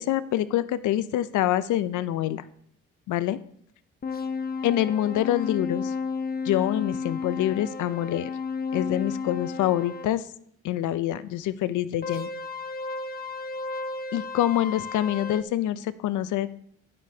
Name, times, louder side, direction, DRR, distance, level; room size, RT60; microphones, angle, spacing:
voice 1, 0.0-2.4 3.1-3.4 4.6-5.9 6.4-8.3 8.7-10.3 10.6-12.3 14.1-16.6, left 12 dB, 80° left, 15 dB, 0.6 m, -26 dB
sound 1, 4.0-10.1 12.0-15.4, left 4 dB, 30° left, 0.8 m, -33 dB
13.0 x 10.5 x 2.8 m, 0.65 s
cardioid pair, 90°, 30 cm